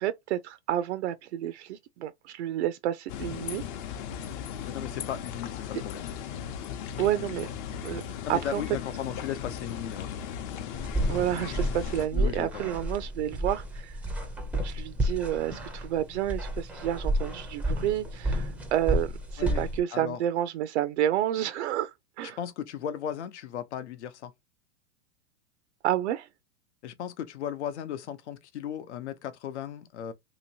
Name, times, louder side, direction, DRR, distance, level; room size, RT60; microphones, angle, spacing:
voice 1, 0.0-3.6 7.0-7.5 7.8-8.0 8.3-8.6 11.1-14.0 14.6-22.4 25.8-26.3, right 12 dB, 80° right, 0.5 m, -30 dB
sound 1, 3.1-12.1, left 9 dB, 45° left, 0.7 m, -37 dB
voice 2, 4.7-6.1 8.2-10.1 12.1-12.7 19.4-19.6 19.9-20.2 22.4-24.3 26.8-30.1, left 9 dB, 80° left, 0.8 m, -36 dB
sound 2, 10.7-19.8, equal, 5° right, 0.4 m, -31 dB
3.0 x 2.9 x 2.7 m
supercardioid pair, 140°, 34 cm